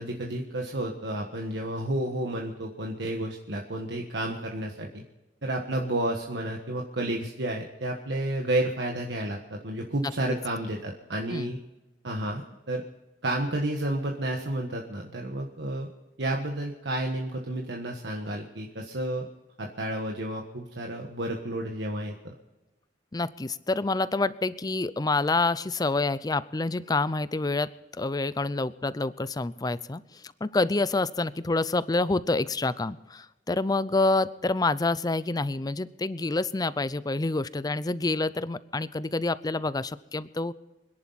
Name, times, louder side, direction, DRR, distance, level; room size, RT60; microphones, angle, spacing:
voice 1, 0.0-5.0 5.4-11.6 12.0-12.8 13.2-15.9 16.2-19.3 19.6-22.3, right 1 dB, 70° right, 1 dB, 1.5 m, -31 dB
voice 2, 23.1-27.7 28.0-40.5, left 3 dB, 20° left, 17 dB, 0.5 m, -27 dB
26.0 x 11.0 x 4.1 m, 1.1 s
head